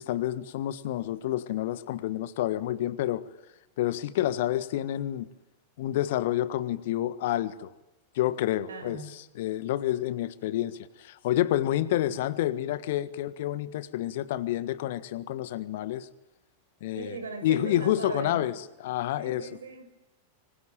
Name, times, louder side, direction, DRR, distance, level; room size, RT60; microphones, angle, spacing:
voice 1, 0.0-3.2 3.8-5.3 5.8-7.7 8.1-16.1 16.8-19.5, left 13 dB, 55° left, 1.5 m, -29 dB
voice 2, 8.7-9.1 12.1-12.2 16.9-18.5 19.2-20.0, right 4 dB, 70° right, 6.4 m, -39 dB
26.0 x 25.0 x 9.1 m
figure-of-eight pair, 90°, 0 cm